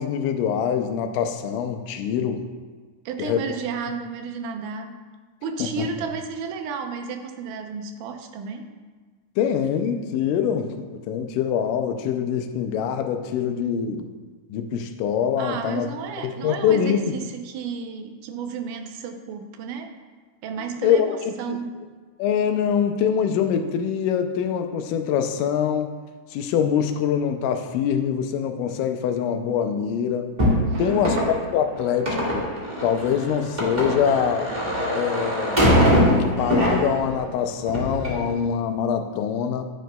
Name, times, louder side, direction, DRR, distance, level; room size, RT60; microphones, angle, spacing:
voice 1, 0.0-2.5 3.2-3.4 5.8-5.9 9.4-14.1 14.5-15.9 16.2-17.0 20.6-21.6 22.2-25.9 26.3-30.3 30.8-32.5 32.8-35.7 36.1-39.6, left 8 dB, 90° left, 7 dB, 2.2 m, -24 dB
voice 2, 3.1-5.0 5.4-8.7 15.4-19.9 20.4-21.9 30.7-31.3, right 5 dB, 85° right, 5 dB, 2.3 m, -32 dB
sound 1, 30.4-37.2 37.6-38.2, equal, 20° right, 1.4 m, -22 dB
10.5 x 9.2 x 2.3 m, 1.4 s
omnidirectional pair, 3.7 m